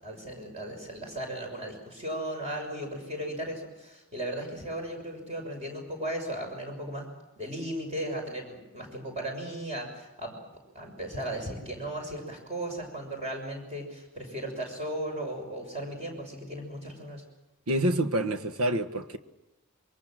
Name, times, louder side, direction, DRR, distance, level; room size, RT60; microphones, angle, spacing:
voice 1, 0.0-7.1 7.4-10.3 10.7-17.2, right 1 dB, 30° right, 6.3 m, -36 dB
voice 2, 17.7-19.2, right 1 dB, 85° right, 1.6 m, -27 dB
27.0 x 23.0 x 7.7 m
head